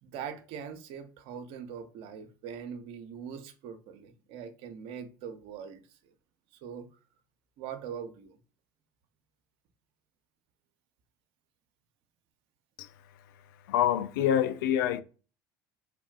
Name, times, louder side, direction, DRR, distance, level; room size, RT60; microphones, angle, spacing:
voice 1, 0.0-6.0 6.6-6.9 7.6-8.4, right 7 dB, 60° right, 0.6 m, -42 dB
voice 2, 13.7-15.0, left 10 dB, 75° left, 0.4 m, -26 dB
3.3 x 2.1 x 2.4 m
hypercardioid pair, 70°, 11 cm